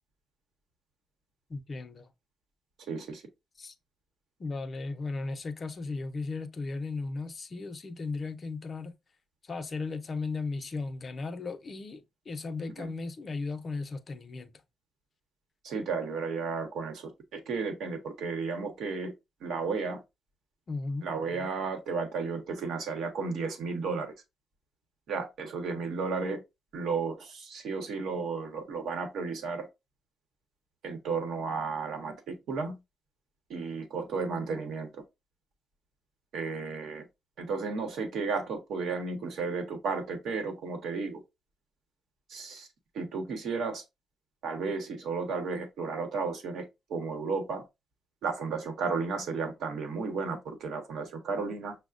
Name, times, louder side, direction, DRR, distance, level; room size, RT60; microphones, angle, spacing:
voice 1, 1.5-2.1 3.6-3.7 4.4-9.0 9.4-14.6 20.7-21.1, left 3 dB, 40° left, 0.5 m, -36 dB
voice 2, 2.9-3.2 12.8-12.9 15.6-19.1 19.4-20.0 21.0-24.1 25.1-26.4 26.7-29.7 30.8-32.8 33.5-35.0 36.3-37.1 37.4-41.2 42.3-42.7 42.9-43.8 44.4-47.6 48.2-51.8, right 4 dB, 75° right, 0.9 m, -33 dB
5.7 x 2.1 x 2.4 m
cardioid pair, 90°, 0 cm